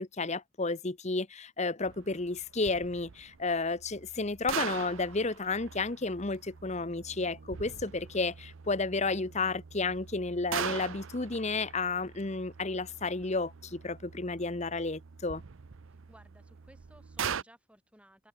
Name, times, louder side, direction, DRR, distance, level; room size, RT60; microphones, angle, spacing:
voice 1, 0.0-15.4, left 3 dB, 30° left, 0.9 m, -32 dB
sound 1, 1.8-17.4, right 7 dB, 65° right, 0.6 m, -42 dB
voice 2, 15.9-18.3, right 1 dB, 5° right, 8.0 m, -59 dB
head